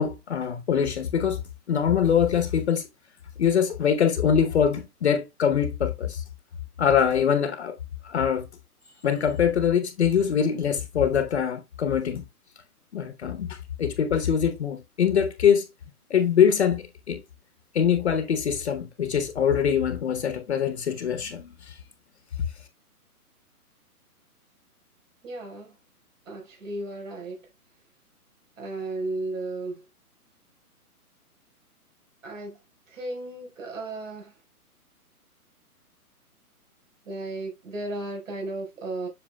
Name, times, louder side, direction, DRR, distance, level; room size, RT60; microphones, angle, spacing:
voice 1, 0.0-1.4 1.7-2.9 3.4-6.2 6.8-7.7 8.0-8.5 9.0-12.2 12.9-15.7 16.1-17.2 17.7-21.7, left 8 dB, 45° left, 1.0 m, -23 dB
voice 2, 25.2-25.8 26.3-27.5 28.6-29.8 32.2-32.6 32.9-34.3 37.0-39.1, right 2 dB, 55° right, 4.4 m, -34 dB
7.7 x 6.5 x 2.2 m
hypercardioid pair, 165°, 46 cm